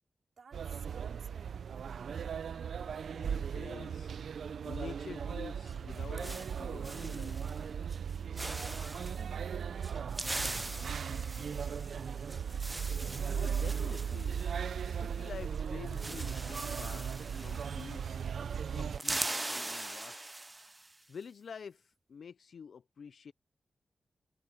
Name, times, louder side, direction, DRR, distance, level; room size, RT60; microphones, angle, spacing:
voice 1, 0.4-2.8 8.3-9.1 9.4-11.3 11.6-12.9, right 5 dB, 65° right, 3.2 m, -57 dB
sound 1, 0.5-19.0, right 7 dB, 85° right, 0.5 m, -37 dB
voice 2, 2.8-4.1 4.6-7.7 13.3-14.5 14.8-18.0 18.7-20.4 21.1-23.3, left 6 dB, 75° left, 0.4 m, -48 dB
sound 2, 5.7-7.6 7.9-8.1 8.4-9.2 9.8-15.3 15.5-15.6 15.9-18.3 18.5-20.9, right 2 dB, 15° right, 0.4 m, -41 dB
wide cardioid pair, 135°, 0 cm